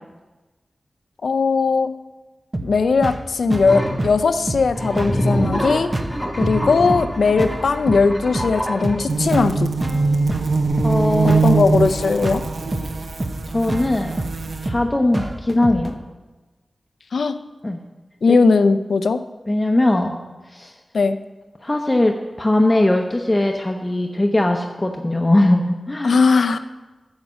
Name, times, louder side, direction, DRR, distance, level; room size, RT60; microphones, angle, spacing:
voice 1, 1.2-1.9 2.6-5.9 6.4-9.7 11.2-12.4 17.1-17.3 18.2-19.2 20.9-21.2 26.0-26.6, left 4 dB, 85° left, 9 dB, 0.5 m, -18 dB
sound 1, 2.5-15.9, right 2 dB, 35° right, 0.9 m, -29 dB
sound 2, 3.7-4.0 4.6-9.0, equal, 5° right, 3.0 m, -25 dB
sound 3, 9.1-14.7, right 4 dB, 70° right, 0.8 m, -22 dB
voice 2, 10.8-11.4 13.5-14.2 14.6-15.9 17.6-17.8 19.5-20.2 20.5-20.7 21.6-26.2, left 1 dB, 25° left, 2 dB, 0.8 m, -20 dB
9.8 x 7.3 x 6.3 m, 1.2 s
wide cardioid pair, 60°, 0 cm